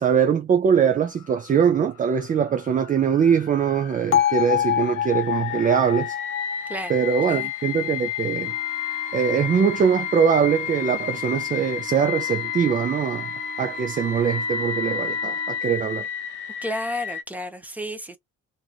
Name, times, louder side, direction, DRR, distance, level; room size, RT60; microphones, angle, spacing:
voice 1, 0.0-6.2 6.9-8.5 9.1-13.3 13.6-16.1, right 7 dB, 30° right, 0.4 m, -22 dB
sound 1, 0.8-17.2, left 9 dB, 80° left, 0.6 m, -32 dB
Bell, 4.1-8.2, left 10 dB, 40° left, 0.8 m, -26 dB
sound 2, 8.4-15.6, right 4 dB, 70° right, 1.2 m, -40 dB
voice 2, 16.6-18.2, equal, 5° right, 0.8 m, -31 dB
2.9 x 2.6 x 2.3 m
cardioid pair, 90°, 30 cm